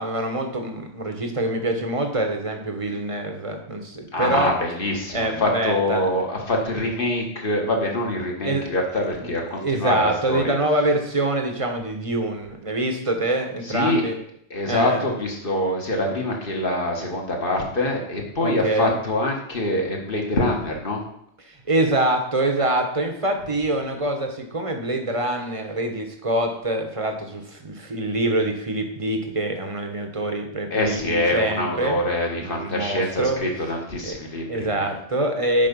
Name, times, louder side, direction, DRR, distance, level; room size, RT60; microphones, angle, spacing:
voice 1, 0.0-4.5 5.1-6.1 8.4-8.6 8.9-9.3 9.6-14.2 14.7-15.1 18.4-19.0 21.4-32.0 32.4-33.4 34.0-34.1 34.5-35.7, right 1 dB, 30° right, 4 dB, 1.1 m, -25 dB
voice 2, 4.1-10.5 13.7-14.0 14.5-21.0 30.7-34.9, left 1 dB, 45° left, 0 dB, 1.7 m, -25 dB
7.6 x 5.3 x 5.3 m, 0.73 s
omnidirectional pair, 1.3 m